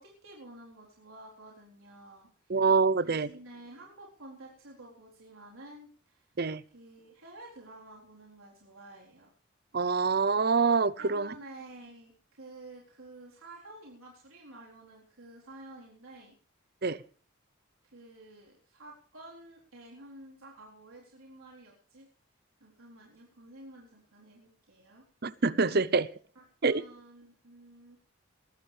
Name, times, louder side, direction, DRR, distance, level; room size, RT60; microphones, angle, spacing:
voice 1, 0.0-2.6 3.0-6.2 6.7-9.3 11.0-16.4 17.8-22.1 22.6-25.1 25.9-26.1 26.4-28.0, right 2 dB, 90° right, 4.1 m, -51 dB
voice 2, 2.5-3.3 6.4-6.6 9.7-11.3 16.8-17.0 25.2-26.1 26.6-26.8, right 4 dB, 50° right, 0.7 m, -25 dB
20.5 x 14.5 x 3.4 m
head